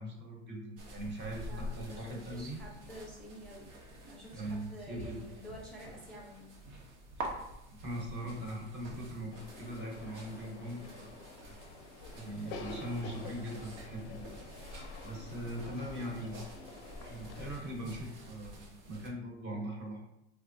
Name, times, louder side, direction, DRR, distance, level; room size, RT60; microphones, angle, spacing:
voice 1, 0.0-2.6 4.3-5.2 7.2-7.3 7.8-9.3 9.6-11.2 11.4-11.5 12.1-14.2 14.5-14.7 15.0-16.6 17.0-20.0, right 1 dB, 35° right, -1 dB, 0.8 m, -41 dB
sound 1, 0.8-19.1, equal, 80° right, 0.8 m, -48 dB
voice 2, 1.4-3.7 4.0-6.5, equal, ahead, -5 dB, 0.6 m, -49 dB
sound 2, 9.3-17.5, left 4 dB, 90° left, 0.5 m, -49 dB
3.4 x 2.0 x 2.6 m, 0.87 s
supercardioid pair, 105°, 34 cm